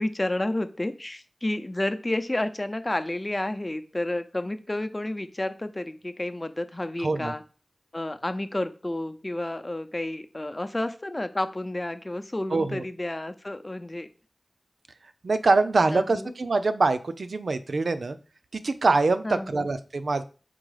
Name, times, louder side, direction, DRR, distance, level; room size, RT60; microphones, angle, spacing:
voice 1, 0.0-7.4 7.9-14.1 15.9-16.3 19.2-19.7, left 1 dB, 30° left, 10 dB, 0.6 m, -30 dB
voice 2, 7.0-7.3 12.5-12.8 15.2-18.2 18.5-20.2, right 3 dB, 80° right, 10 dB, 0.6 m, -24 dB
5.3 x 3.8 x 4.9 m, 0.35 s
wide cardioid pair, 60°, 0 cm